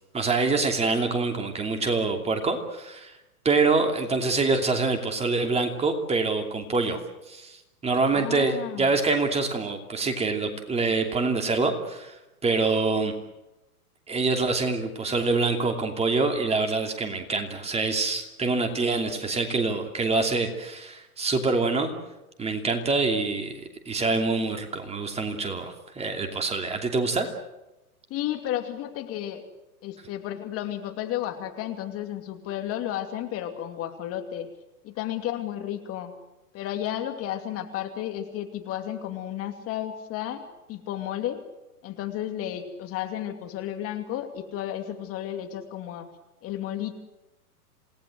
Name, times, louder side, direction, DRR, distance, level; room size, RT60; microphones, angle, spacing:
voice 1, 0.1-3.1 3.4-7.0 7.3-7.6 7.8-12.2 12.4-13.1 14.1-21.9 22.4-23.6 23.9-27.3, right 3 dB, 15° right, 4 dB, 2.8 m, -25 dB
voice 2, 8.1-8.9 28.1-29.4 29.8-34.5 34.8-36.1 36.5-40.4 40.7-41.4 41.8-46.1 46.4-46.9, left 11 dB, 30° left, 6 dB, 2.6 m, -32 dB
28.0 x 19.0 x 7.9 m, 0.98 s
hypercardioid pair, 120°, 45 cm